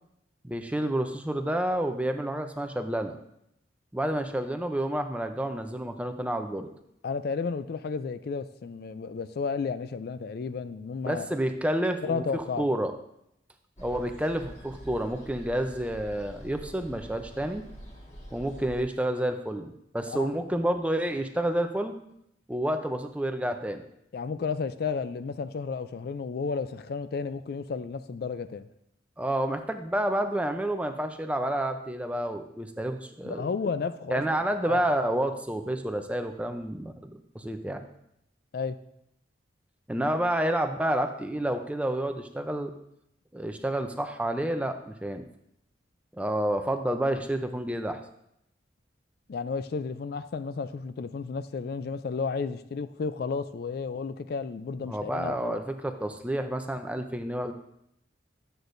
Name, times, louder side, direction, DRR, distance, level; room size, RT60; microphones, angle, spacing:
voice 1, 0.4-3.2 3.9-6.7 11.0-12.9 13.8-17.6 18.3-21.9 22.5-23.8 29.2-33.5 34.1-37.8 39.9-42.7 43.3-45.2 46.1-48.0 54.9-57.5, right 1 dB, 5° right, 6 dB, 0.5 m, -29 dB
voice 2, 7.0-11.3 12.0-12.7 20.1-20.3 24.1-28.7 33.2-34.8 38.5-38.8 49.3-55.6, left 5 dB, 55° left, 12 dB, 0.3 m, -32 dB
sound 1, 13.8-18.8, equal, 35° left, 1.7 m, -46 dB
12.0 x 8.0 x 2.6 m, 0.78 s
head